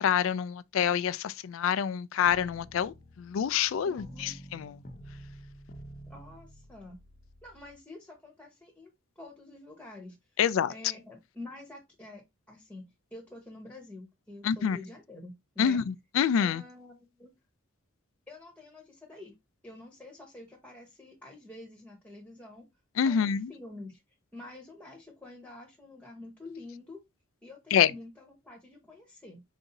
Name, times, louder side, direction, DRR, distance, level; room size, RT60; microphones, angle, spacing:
voice 1, 0.0-4.8 10.4-10.7 14.4-14.8 15.6-16.6 23.0-23.5 27.7-27.9, left 8 dB, 75° left, 0.3 m, -27 dB
sound 1, 2.3-7.8, equal, 40° left, 0.6 m, -49 dB
voice 2, 3.8-4.3 6.1-7.0 7.4-8.9 9.2-10.4 10.7-15.8 16.4-17.3 18.3-19.3 19.6-22.7 23.0-24.0 24.3-27.0 27.4-29.4, left 2 dB, 5° left, 0.9 m, -47 dB
4.8 x 2.7 x 3.8 m
head